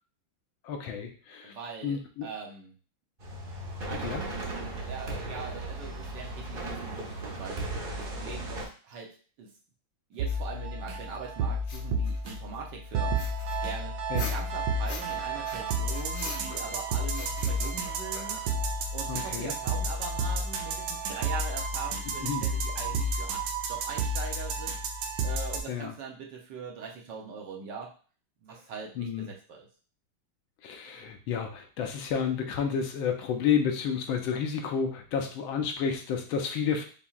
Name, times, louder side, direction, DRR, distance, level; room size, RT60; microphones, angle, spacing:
voice 1, 0.6-1.5 1.8-2.3 4.0-4.2 14.1-14.3 19.1-19.5 22.2-22.4 25.7-25.9 29.0-29.3 30.6-36.8, left 7 dB, 80° left, 4 dB, 1.4 m, -30 dB
voice 2, 1.4-2.7 3.8-4.1 4.8-9.5 10.1-14.0 14.3-23.4 23.7-27.9 28.4-29.7, right 5 dB, 65° right, -1 dB, 1.4 m, -42 dB
sound 1, 3.2-8.7, right 2 dB, 40° right, 0.8 m, -36 dB
sound 2, 10.2-25.6, right 2 dB, 80° right, 1.5 m, -31 dB
sound 3, 10.3-10.4 11.6-12.6 13.2-15.2 15.4-16.8 17.1-18.6, left 3 dB, 60° left, 1.2 m, -43 dB
7.0 x 2.7 x 2.4 m, 0.40 s
omnidirectional pair, 2.3 m